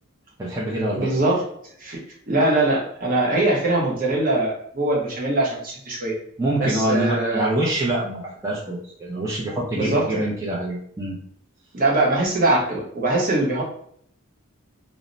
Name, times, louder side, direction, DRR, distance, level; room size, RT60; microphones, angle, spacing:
voice 1, 0.4-1.1 6.4-11.2, right 1 dB, 15° right, -7 dB, 0.4 m, -25 dB
voice 2, 0.9-1.4 1.8-2.0 2.3-6.1 6.6-7.5 9.7-10.2 11.7-13.6, right 2 dB, 40° right, -3 dB, 0.7 m, -22 dB
2.1 x 2.0 x 3.7 m, 0.66 s
head